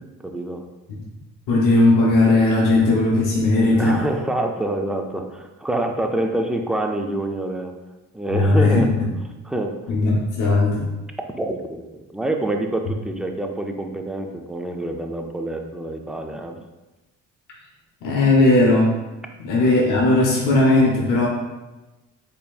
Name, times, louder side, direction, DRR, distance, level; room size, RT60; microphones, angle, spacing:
voice 1, 0.2-0.6 3.7-7.7 8.1-9.0 9.4-9.8 11.4-11.8 12.1-16.6, right 1 dB, ahead, 4 dB, 0.3 m, -26 dB
voice 2, 1.5-4.0 8.3-8.8 9.9-10.8 18.0-18.9 19.4-21.3, left 2 dB, 85° left, -3 dB, 0.7 m, -17 dB
4.2 x 3.3 x 2.3 m, 1.1 s
cardioid pair, 90°, 30 cm